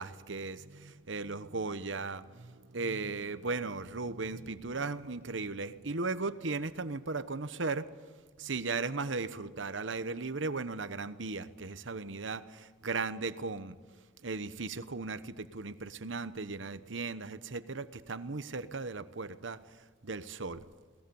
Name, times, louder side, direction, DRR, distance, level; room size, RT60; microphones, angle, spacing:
voice 1, 0.0-7.9 8.4-13.7 14.2-19.6 20.0-20.6, right 3 dB, 70° right, 13 dB, 1.1 m, -37 dB
22.5 x 19.0 x 7.1 m, 1.4 s
head